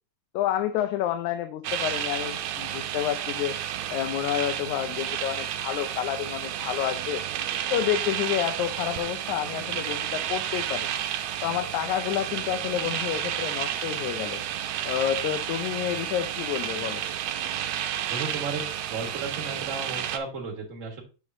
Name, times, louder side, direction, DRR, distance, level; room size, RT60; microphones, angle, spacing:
voice 1, 0.3-3.6 3.9-7.2 7.7-11.0 11.4-14.4 14.9-17.0, left 11 dB, 85° left, 8 dB, 2.0 m, -29 dB
sound 1, 1.6-20.2, right 10 dB, 80° right, 1.8 m, -31 dB
voice 2, 18.1-21.0, right 4 dB, 35° right, 2 dB, 1.5 m, -34 dB
7.3 x 6.6 x 2.6 m, 0.34 s
omnidirectional pair, 3.3 m